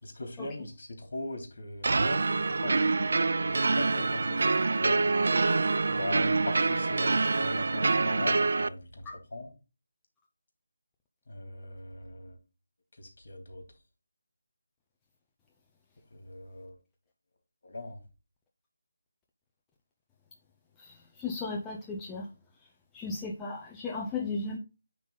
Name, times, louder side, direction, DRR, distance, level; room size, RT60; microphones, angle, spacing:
voice 1, 0.0-2.2 2.6-4.4 4.7-5.1 5.9-9.5 11.3-12.4 13.0-13.6 16.1-16.8 17.6-18.0, left 2 dB, 55° left, 3.2 m, -40 dB
sound 1, 1.8-8.7, right 3 dB, 60° right, 0.3 m, -26 dB
voice 2, 21.2-22.3 22.9-24.6, left 3 dB, 10° left, 0.5 m, -35 dB
9.8 x 3.8 x 4.0 m
figure-of-eight pair, 170°, 0 cm